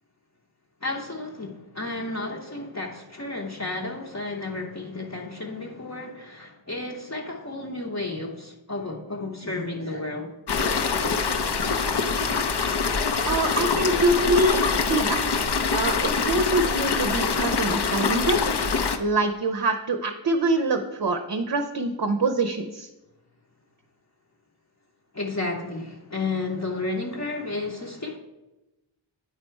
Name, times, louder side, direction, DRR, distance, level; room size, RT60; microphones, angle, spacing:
voice 1, 0.8-10.3 25.1-28.2, left 2 dB, 35° left, -1 dB, 0.9 m, -32 dB
sound 1, 10.5-19.0, left 5 dB, 55° left, 0.6 m, -24 dB
voice 2, 13.2-15.2 15.7-18.5 19.0-22.9, right 2 dB, 50° right, 5 dB, 0.6 m, -25 dB
9.2 x 4.2 x 4.5 m, 1.0 s
wide cardioid pair, 50°, 48 cm